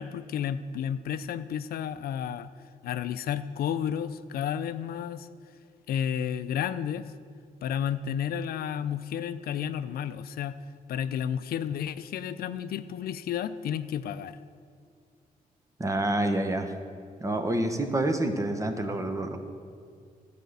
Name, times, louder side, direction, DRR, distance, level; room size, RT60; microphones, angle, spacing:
voice 1, 0.0-2.5 2.8-5.3 5.9-7.1 7.6-10.6 10.9-14.4, left 9 dB, 80° left, 12 dB, 0.4 m, -32 dB
voice 2, 15.8-16.7 17.2-19.4, right 1 dB, 20° right, 6 dB, 1.0 m, -27 dB
12.0 x 5.0 x 7.9 m, 2.2 s
cardioid pair, 85°, 15 cm